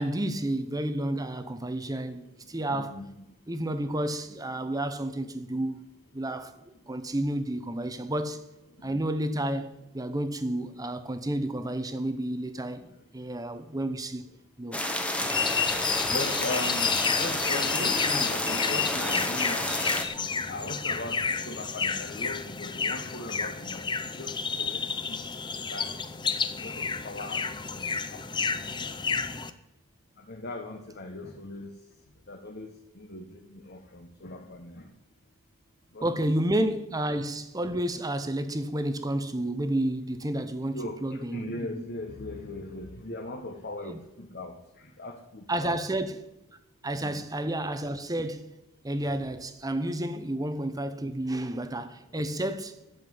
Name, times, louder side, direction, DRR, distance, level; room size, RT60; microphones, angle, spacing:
voice 1, 0.0-3.0 3.5-5.9 6.1-8.4 8.8-12.9 13.1-14.2 14.6-14.8 36.0-41.8 43.8-44.0 45.5-46.2 46.8-48.6 48.8-52.8, right 1 dB, 15° right, 0.8 m, -31 dB
voice 2, 2.7-3.1 8.8-9.0 16.1-19.7 20.5-21.2 21.4-23.8 24.2-24.8 25.1-25.2 25.7-26.0 26.6-27.4 27.7-28.2 30.3-31.7 32.3-32.7 33.0-34.8 35.9-36.1 40.7-44.5 45.0-45.8 46.9-47.2, left 2 dB, 45° left, 1.3 m, -38 dB
sound 1, 14.7-20.0, left 1 dB, 5° left, 1.2 m, -30 dB
sound 2, 15.2-29.5, left 5 dB, 20° left, 0.6 m, -30 dB
11.5 x 7.3 x 9.4 m
head